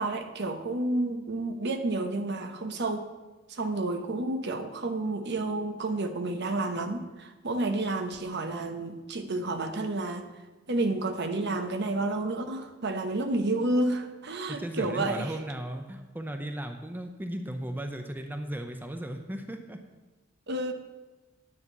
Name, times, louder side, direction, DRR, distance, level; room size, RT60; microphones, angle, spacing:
voice 1, 0.0-3.1 3.5-10.2 10.7-15.3 20.5-20.7, right 2 dB, 55° right, 7 dB, 1.0 m, -30 dB
voice 2, 14.5-19.8, right 1 dB, 10° right, 5 dB, 0.6 m, -36 dB
9.6 x 5.7 x 8.2 m, 1.2 s
head